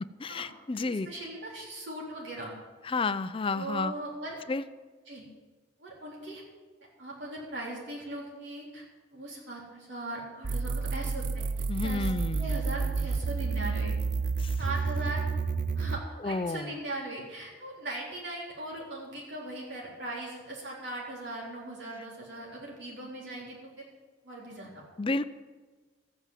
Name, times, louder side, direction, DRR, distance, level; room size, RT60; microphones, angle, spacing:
voice 1, 0.2-1.1 2.8-3.9 4.5-4.6 11.7-12.5 14.4-14.6 16.2-16.7 25.0-25.3, left 3 dB, 30° left, 12 dB, 0.5 m, -31 dB
voice 2, 0.7-2.5 3.5-4.4 5.1-5.2 5.8-6.4 7.0-8.8 9.1-11.4 11.8-12.1 12.4-13.9 14.6-15.3 15.7-23.9 24.2-24.8, right 1 dB, 75° right, -4 dB, 3.8 m, -39 dB
sound 1, 10.4-16.0, right 4 dB, 45° right, 0.5 m, -30 dB
14.0 x 9.2 x 7.5 m, 1.4 s
head